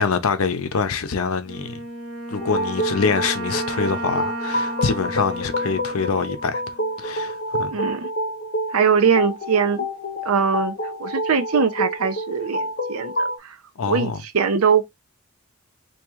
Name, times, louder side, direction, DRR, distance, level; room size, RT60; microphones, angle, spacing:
voice 1, 0.0-1.8 2.3-7.7 13.8-14.2, left 5 dB, 75° left, 0.6 m, -25 dB
Wind instrument woodwind instrument, 1.5-6.9, right 1 dB, 60° right, 1.7 m, -33 dB
sound 1, 2.4-13.4, equal, 45° left, 0.9 m, -28 dB
voice 2, 7.7-8.1 8.7-9.9 10.2-13.6 13.9-14.9, right 6 dB, 80° right, 0.7 m, -21 dB
3.6 x 2.8 x 3.0 m
head